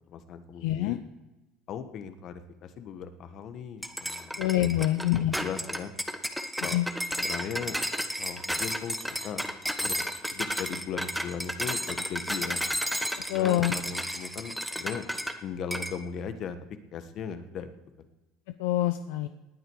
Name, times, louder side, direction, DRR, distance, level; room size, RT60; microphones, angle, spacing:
voice 1, 0.1-1.0 1.7-4.4 4.7-5.9 6.6-6.8 7.2-7.8 8.2-9.5 9.8-12.6 13.3-15.1 15.4-16.6 16.9-17.7 18.0-18.1, left 7 dB, 55° left, 9 dB, 1.4 m, -38 dB
voice 2, 0.6-1.0 4.4-5.4 6.7-6.9 13.3-13.7 18.6-19.3, left 14 dB, 80° left, 9 dB, 0.6 m, -25 dB
sound 1, 3.8-15.4 15.7-16.0, equal, ahead, 1.2 m, -32 dB
19.0 x 9.1 x 4.8 m, 1.0 s
supercardioid pair, 85°, 0 cm